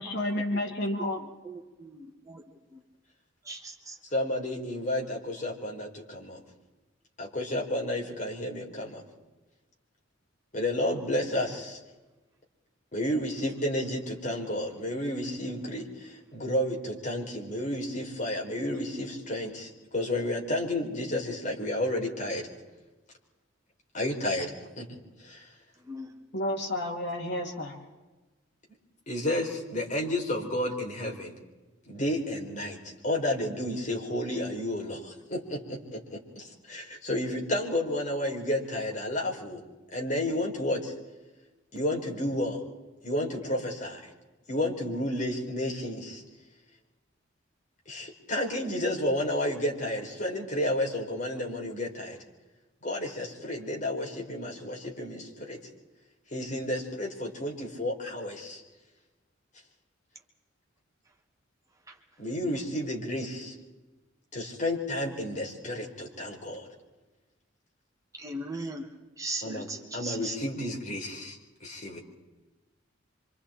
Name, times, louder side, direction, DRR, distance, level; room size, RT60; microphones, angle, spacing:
voice 1, 0.0-1.2 26.3-27.8, left 1 dB, 60° left, 1 dB, 2.9 m, -31 dB
voice 2, 1.9-2.4 2.7-2.8 3.5-4.0 13.4-13.5 18.6-18.8 25.8-26.1 61.9-62.0 68.1-68.9 69.2-70.3, right 1 dB, 20° right, 2 dB, 1.9 m, -38 dB
voice 3, 4.1-6.4 7.2-9.0 10.5-11.8 12.9-22.5 23.9-25.5 29.1-31.3 31.8-32.8 33.0-39.6 39.9-40.9 41.7-42.6 43.0-44.1 44.5-46.2 47.9-52.2 52.8-55.6 56.3-58.6 62.2-63.5 64.3-66.7 69.4-69.7 69.9-72.0, left 1 dB, 40° left, 0 dB, 4.3 m, -31 dB
27.0 x 25.5 x 4.4 m, 1.2 s
head